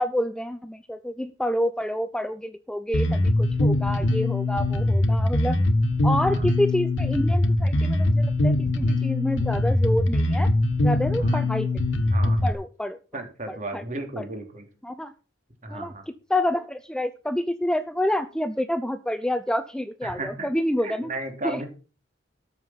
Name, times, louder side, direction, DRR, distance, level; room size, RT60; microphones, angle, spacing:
voice 1, 0.0-5.6 6.0-10.5 10.8-11.9 12.4-13.2 13.5-13.8 14.2-14.3 14.8-15.1 15.7-21.1 21.4-21.6, left 1 dB, 5° left, 11 dB, 0.6 m, -28 dB
Bass guitar, 2.9-12.5, left 1 dB, 85° left, 1.4 m, -22 dB
voice 2, 12.1-12.4 13.1-14.6 15.6-16.0 20.0-20.5 20.8-21.7, right 2 dB, 45° right, 5 dB, 3.1 m, -34 dB
13.0 x 7.0 x 5.7 m, 0.35 s
head